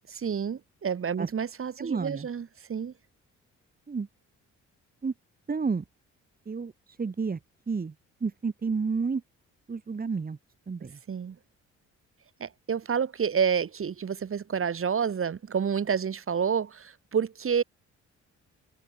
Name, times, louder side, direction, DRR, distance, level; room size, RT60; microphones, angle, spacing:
voice 1, 0.1-2.9 11.1-11.4 12.4-17.6, right 7 dB, 45° right, 3.7 m, -29 dB
voice 2, 1.8-2.3 3.9-4.1 5.0-5.1 5.5-5.8 6.5-6.7 7.0-7.4 7.7-7.9 8.2-9.2 9.7-10.4 10.7-11.0, right 5 dB, 30° right, 2.8 m, -30 dB
cardioid pair, 90°, 30 cm